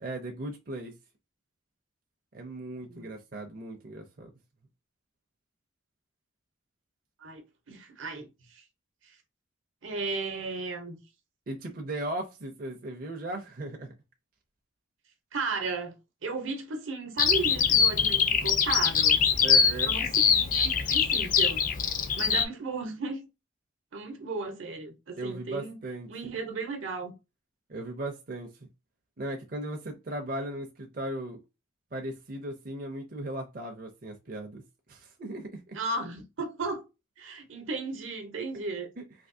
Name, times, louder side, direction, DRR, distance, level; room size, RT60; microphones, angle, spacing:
voice 1, 0.0-0.9 2.3-4.3 11.5-13.9 19.4-19.9 25.2-26.3 27.7-28.5 29.2-31.4 31.9-34.6 34.9-35.8, right 1 dB, 45° right, 0.5 m, -37 dB
voice 2, 2.8-3.1 7.2-8.6 9.8-11.0 15.3-15.9 16.2-19.2 19.8-21.6 22.1-23.3 23.9-25.8 26.1-27.1 35.7-36.9 37.2-38.9, right 3 dB, 80° right, 0.8 m, -35 dB
Bird vocalization bird call bird song, 17.2-22.4, left 7 dB, 40° left, 0.4 m, -23 dB
3.4 x 2.7 x 2.6 m
head